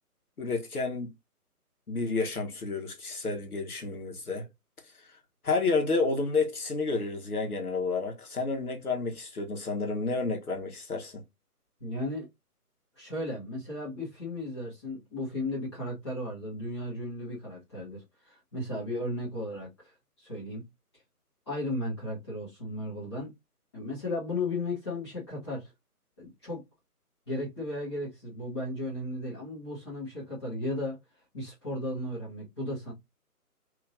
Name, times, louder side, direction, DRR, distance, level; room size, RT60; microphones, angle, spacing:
voice 1, 0.4-1.1 1.9-4.5 5.4-11.2, left 3 dB, 70° left, 1.2 m, -30 dB
voice 2, 11.8-12.3 13.0-20.6 21.5-23.3 23.7-25.7 26.2-26.6 27.3-31.0 31.3-32.9, left 1 dB, 15° left, 1.2 m, -35 dB
3.5 x 2.8 x 2.5 m
figure-of-eight pair, 150°, 47 cm